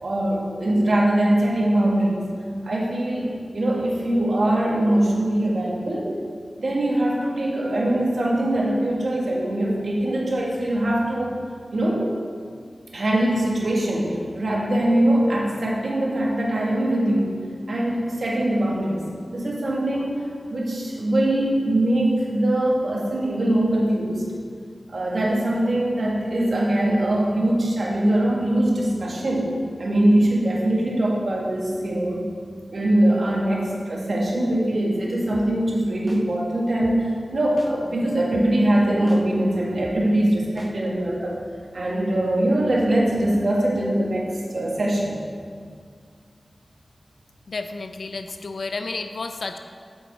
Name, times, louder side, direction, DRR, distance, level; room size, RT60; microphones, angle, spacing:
voice 1, 0.0-2.3 2.6-6.1 6.6-11.4 11.7-12.0 12.9-17.4 17.7-19.0 19.3-20.2 20.5-24.3 24.9-32.3 32.7-41.4 41.7-45.2, right 1 dB, 75° right, -3 dB, 1.6 m, -22 dB
sound 1, 35.3-35.5 36.1-36.2 36.8-37.0 37.6-37.7 38.3-38.5 39.1-39.2 39.8-40.0 40.6-40.7, right 1 dB, 15° right, 0.8 m, -39 dB
voice 2, 47.5-49.6, left 3 dB, 90° left, 7 dB, 0.5 m, -31 dB
8.0 x 7.1 x 4.1 m, 2.1 s
wide cardioid pair, 55°, 0 cm